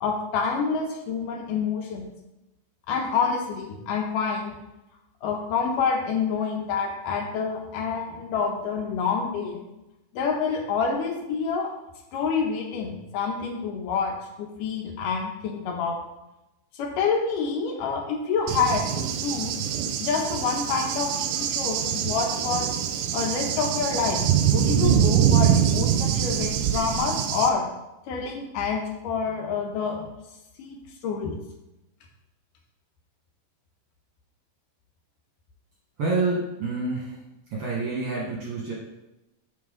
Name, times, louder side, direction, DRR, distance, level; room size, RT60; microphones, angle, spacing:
voice 1, 0.0-2.1 2.9-4.6 5.2-9.7 10.1-11.7 12.1-16.0 16.7-19.6 20.0-22.8 23.1-27.6 28.1-30.1 30.6-31.4, left 5 dB, 75° left, 1 dB, 2.3 m, -27 dB
Cricket / Thunder, 18.5-27.5, right 9 dB, 80° right, 2.0 m, -24 dB
voice 2, 36.0-37.2 37.5-38.7, right 3 dB, 60° right, -5 dB, 1.6 m, -27 dB
7.2 x 5.7 x 3.8 m, 0.95 s
omnidirectional pair, 4.1 m